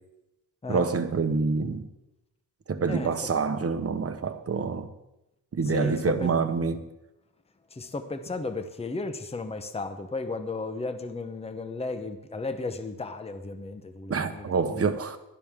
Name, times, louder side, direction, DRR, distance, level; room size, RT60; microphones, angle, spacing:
voice 1, 0.7-1.9 2.7-4.9 5.5-6.9 14.1-15.2, right 5 dB, 40° right, 1.1 m, -27 dB
voice 2, 5.7-6.3 7.7-14.9, left 3 dB, 15° left, 0.9 m, -34 dB
15.5 x 12.0 x 3.7 m
cardioid pair, 105°, 36 cm